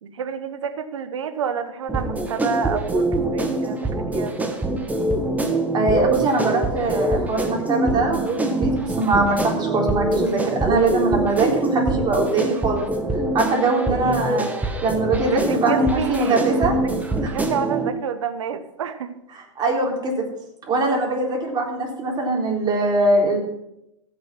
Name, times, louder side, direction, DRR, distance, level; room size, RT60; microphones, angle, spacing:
voice 1, 0.0-4.3 15.2-19.1, right 7 dB, 75° right, 11 dB, 1.1 m, -29 dB
sound 1, 1.9-17.9, right 2 dB, 10° right, 1.6 m, -24 dB
voice 2, 5.7-12.9 13.3-14.5 14.8-16.7 17.2-17.3 19.6-20.2 20.7-23.4, right 2 dB, 30° right, -1 dB, 4.0 m, -22 dB
15.5 x 6.7 x 6.0 m, 0.84 s
hypercardioid pair, 110°, 16 cm